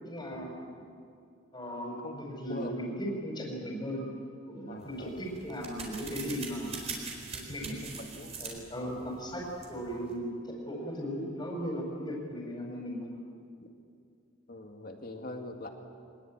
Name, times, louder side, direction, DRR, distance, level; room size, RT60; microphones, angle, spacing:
voice 1, 0.0-0.8 1.5-4.1 4.5-6.9 7.3-7.8 8.4-13.1, equal, 20° left, -3 dB, 5.2 m, -37 dB
voice 2, 2.5-3.0 4.7-5.2 7.8-8.4 8.8-9.0 14.5-15.7, left 1 dB, 45° left, 3 dB, 2.3 m, -42 dB
sound 1, 4.8-10.2, right 4 dB, 30° right, 4.3 m, -43 dB
25.0 x 20.0 x 8.9 m, 2.3 s
head